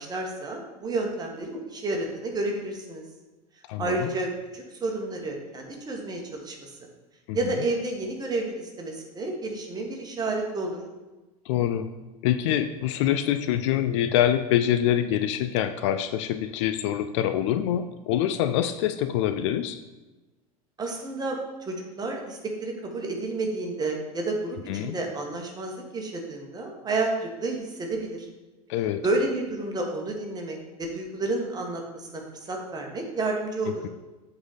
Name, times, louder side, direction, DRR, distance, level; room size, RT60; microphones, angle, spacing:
voice 1, 0.0-3.0 3.8-6.7 7.3-10.8 20.8-28.3 29.0-33.8, right 2 dB, 20° right, 1 dB, 1.7 m, -30 dB
voice 2, 3.7-4.1 7.3-7.4 11.5-11.9 12.2-19.8 24.7-25.0 28.7-29.0, left 11 dB, 50° left, 10 dB, 0.5 m, -25 dB
7.8 x 4.1 x 5.1 m, 1.1 s
figure-of-eight pair, 80°, 19 cm